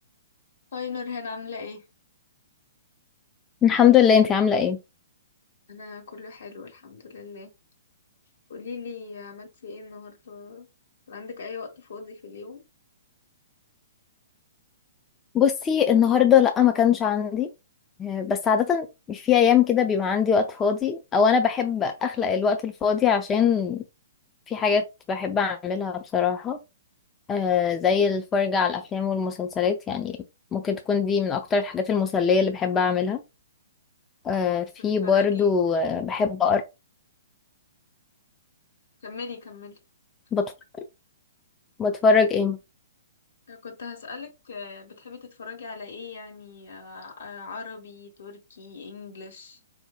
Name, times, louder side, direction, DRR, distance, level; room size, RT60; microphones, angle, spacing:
voice 1, 0.7-1.8 5.7-7.5 8.5-10.7 11.1-12.6 35.0-35.8 39.0-39.8 43.5-49.6, left 5 dB, 60° left, 1.1 m, -39 dB
voice 2, 3.6-4.8 15.3-17.5 18.0-23.8 24.5-26.6 27.3-30.2 30.5-33.2 34.2-36.6 40.3-40.4 41.8-42.6, left 7 dB, 20° left, 0.3 m, -22 dB
4.0 x 2.5 x 2.3 m
figure-of-eight pair, 120°, 0 cm